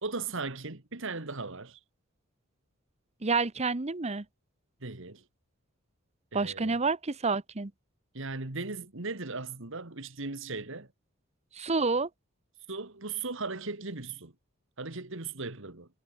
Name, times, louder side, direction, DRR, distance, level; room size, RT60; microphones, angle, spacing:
voice 1, 0.0-1.8 4.8-5.2 6.3-6.8 8.1-10.9 12.7-14.3 14.8-15.9, right 3 dB, 65° right, 2.2 m, -37 dB
voice 2, 3.2-4.2 6.3-7.7 11.6-12.1, right 4 dB, 30° right, 1.0 m, -29 dB
head